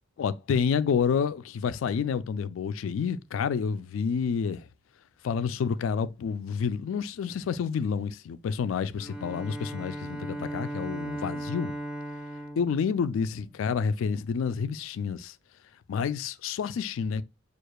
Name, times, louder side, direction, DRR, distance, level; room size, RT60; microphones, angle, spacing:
voice 1, 0.2-4.6 5.2-11.8 12.6-15.3 15.9-17.2, left 6 dB, 90° left, 0.3 m, -29 dB
Bowed string instrument, 9.0-13.8, right 1 dB, 5° right, 0.6 m, -37 dB
6.4 x 2.4 x 2.2 m
head